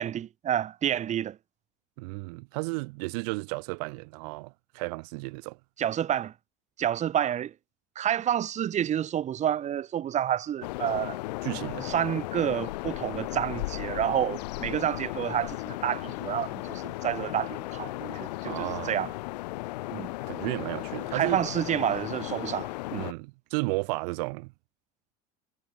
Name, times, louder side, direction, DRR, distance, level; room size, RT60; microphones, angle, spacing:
voice 1, 0.0-1.4 5.8-6.3 6.8-7.5 8.0-11.2 11.8-19.1 19.9-20.1 21.1-23.1, right 10 dB, 35° right, 2.5 m, -29 dB
voice 2, 2.0-5.6 11.4-11.9 18.4-19.0 20.3-21.4 22.9-24.5, right 30 dB, 75° right, 3.2 m, -33 dB
sound 1, 10.6-23.1, left 19 dB, 90° left, 2.1 m, -35 dB
supercardioid pair, 125°, 21 cm